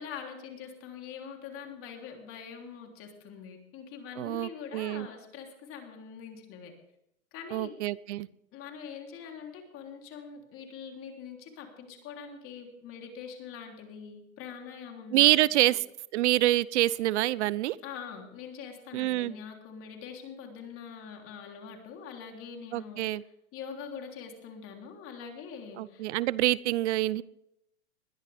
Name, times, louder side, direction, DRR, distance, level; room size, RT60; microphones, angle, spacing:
voice 1, 0.0-6.7 7.3-7.7 8.5-15.7 17.8-23.1 23.5-26.1, left 6 dB, 30° left, 3 dB, 3.4 m, -44 dB
voice 2, 4.2-5.1 7.5-8.3 15.1-15.8 16.1-17.8 18.9-19.3 22.7-23.2 25.8-27.2, right 16 dB, 55° right, 21 dB, 0.7 m, -26 dB
21.0 x 12.0 x 3.5 m, 0.81 s
hypercardioid pair, 135°, 41 cm